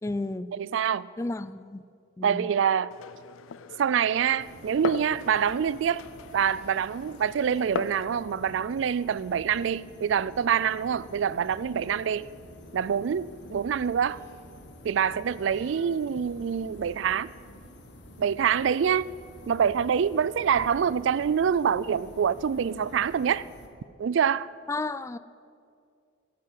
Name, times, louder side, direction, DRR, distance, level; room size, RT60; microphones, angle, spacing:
voice 1, 0.0-0.5 1.2-1.8 2.2-2.5 24.7-25.2, left 2 dB, 15° left, 0.3 m, -32 dB
voice 2, 0.5-1.1 2.2-2.9 3.8-6.0 6.3-12.3 12.7-14.2 14.8-17.3 18.2-19.1 19.5-23.5 24.0-24.5, right 7 dB, 70° right, 0.3 m, -26 dB
Glass, 2.9-8.0, left 6 dB, 85° left, 0.4 m, -39 dB
sound 1, 4.4-23.7, left 1 dB, 60° left, 1.4 m, -48 dB
12.0 x 8.6 x 9.1 m
head